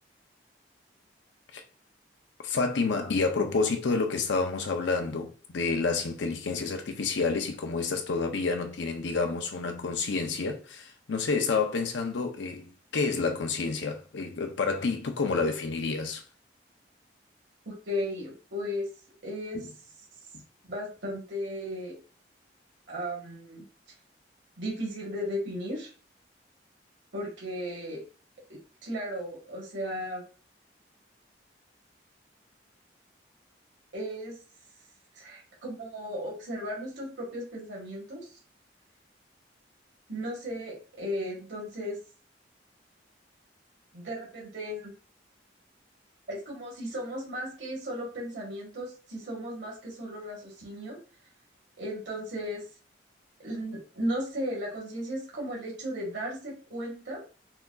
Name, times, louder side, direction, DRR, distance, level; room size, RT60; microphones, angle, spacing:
voice 1, 2.4-16.2 19.5-19.7, left 4 dB, 80° left, 0.5 m, -29 dB
voice 2, 17.7-18.9 19.2-19.7 20.7-22.0 22.9-23.6 24.6-25.9 27.1-28.0 28.5-30.2 33.9-34.4 35.2-38.3 40.1-42.0 43.9-44.9 46.3-51.0 51.8-52.6 53.4-57.2, equal, 75° right, 1.8 m, -35 dB
5.6 x 2.6 x 2.3 m
head